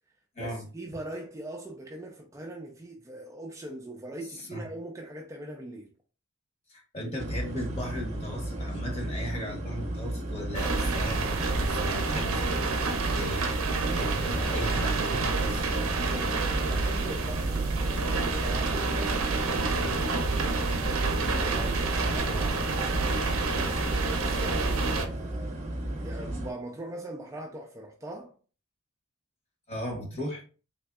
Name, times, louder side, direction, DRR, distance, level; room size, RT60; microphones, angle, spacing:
voice 1, 0.4-5.9 16.0-20.7 21.2-23.0 23.5-28.4, right 1 dB, 15° right, 0.3 m, -41 dB
voice 2, 4.3-4.7 6.7-12.4 13.0-15.7 22.0-22.5 22.8-22.9 29.7-30.4, equal, 30° left, 1.1 m, -37 dB
sound 1, 7.2-26.5, right 1 dB, 35° right, 0.8 m, -34 dB
sound 2, 10.5-25.1, right 3 dB, 65° right, 0.5 m, -28 dB
3.4 x 3.1 x 2.4 m
head